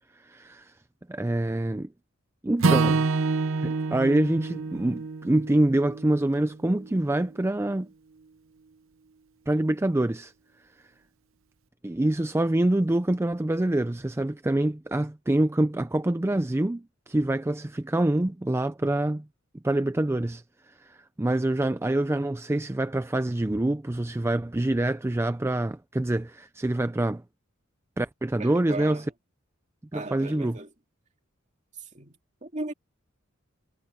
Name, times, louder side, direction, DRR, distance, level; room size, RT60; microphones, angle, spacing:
voice 1, 0.2-0.7 1.1-1.9 2.4-3.1 3.6-7.9 9.5-10.3 11.8-19.3 19.6-27.2 28.0-29.0 29.9-30.6, right 1 dB, 15° right, 0.4 m, -26 dB
Acoustic guitar / Strum, 2.6-6.9, right 4 dB, 75° right, 0.8 m, -27 dB
voice 2, 28.4-29.1 29.9-30.7 31.7-32.7, right 2 dB, 35° right, 2.4 m, -37 dB
head